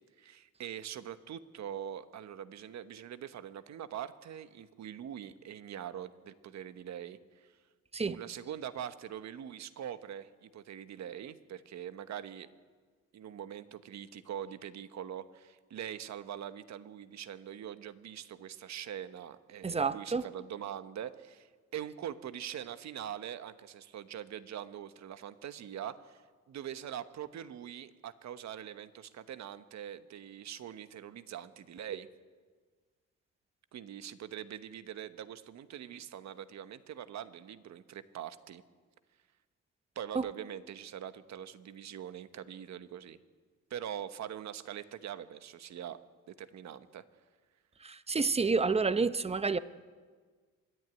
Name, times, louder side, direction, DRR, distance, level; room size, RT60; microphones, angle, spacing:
voice 1, 0.2-7.5 8.0-12.5 13.1-32.1 33.7-38.6 39.9-43.2 43.7-46.0 46.3-47.0, right 10 dB, 65° right, 12 dB, 1.1 m, -43 dB
voice 2, 19.6-20.2 40.1-40.3 47.8-49.6, right 4 dB, 20° right, 14 dB, 0.8 m, -29 dB
25.0 x 11.0 x 9.6 m, 1.5 s
cardioid pair, 90°, 30 cm